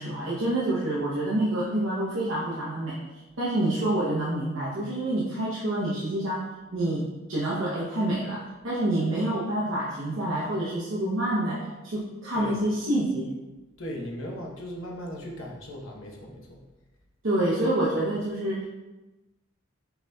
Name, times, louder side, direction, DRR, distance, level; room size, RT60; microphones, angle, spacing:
voice 1, 0.0-13.4 17.2-18.7, right 1 dB, 70° right, -7 dB, 0.8 m, -27 dB
voice 2, 13.8-16.6, equal, 75° left, -1 dB, 0.9 m, -37 dB
5.8 x 4.0 x 2.2 m, 1.1 s
head